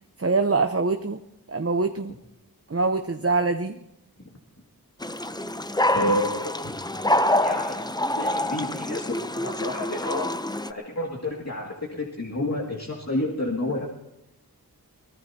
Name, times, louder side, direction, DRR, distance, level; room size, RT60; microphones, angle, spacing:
voice 1, 0.2-1.2 1.5-2.2 2.7-3.8, right 3 dB, 40° right, 6 dB, 0.8 m, -24 dB
sound 1, 5.0-10.7, left 1 dB, 10° left, 0.6 m, -26 dB
voice 2, 5.9-6.8 7.4-7.8 8.2-10.3 10.7-13.9, left 1 dB, 45° left, -1 dB, 2.2 m, -29 dB
24.0 x 18.0 x 2.8 m, 0.89 s
wide cardioid pair, 45°, 37 cm